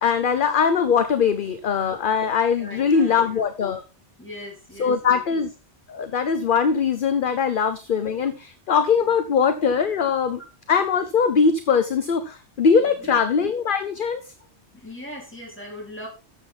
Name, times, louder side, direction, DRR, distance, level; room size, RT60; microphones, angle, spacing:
voice 1, 0.0-3.8 4.8-5.5 5.9-10.4 10.7-14.3, left 6 dB, 50° left, 10 dB, 0.9 m, -21 dB
voice 2, 2.6-3.4 4.2-5.2 9.0-9.2 12.8-13.3 14.7-16.1, left 1 dB, 10° left, -2 dB, 4.1 m, -40 dB
12.5 x 7.4 x 3.8 m, 0.30 s
omnidirectional pair, 1.2 m